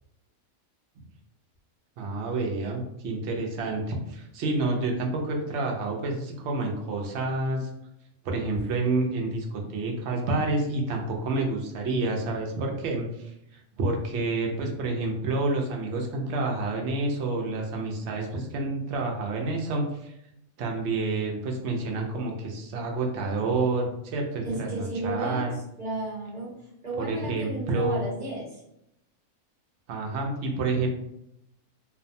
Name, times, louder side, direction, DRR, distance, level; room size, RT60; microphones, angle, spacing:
voice 1, 2.0-7.7 8.2-20.1 20.6-25.6 27.0-28.0 29.9-30.9, right 2 dB, 65° right, 1 dB, 0.8 m, -29 dB
voice 2, 24.4-25.5 25.8-26.5 26.8-28.6, right 2 dB, 35° right, -6 dB, 1.1 m, -33 dB
2.5 x 2.2 x 2.6 m, 0.80 s
omnidirectional pair, 1.5 m